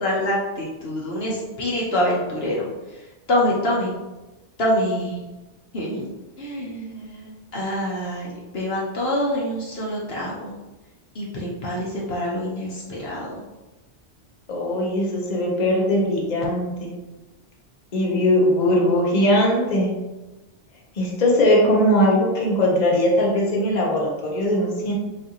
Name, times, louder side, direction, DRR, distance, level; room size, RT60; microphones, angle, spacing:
voice 1, 0.0-2.7 3.3-3.9 4.6-5.2 5.7-6.1 6.4-10.5 11.1-13.3, left 1 dB, 60° left, -4 dB, 1.0 m, -25 dB
voice 2, 14.5-16.9 17.9-19.9 21.0-24.9, left 1 dB, 40° left, -3 dB, 0.9 m, -20 dB
5.3 x 2.6 x 2.9 m, 1.1 s
omnidirectional pair, 1.2 m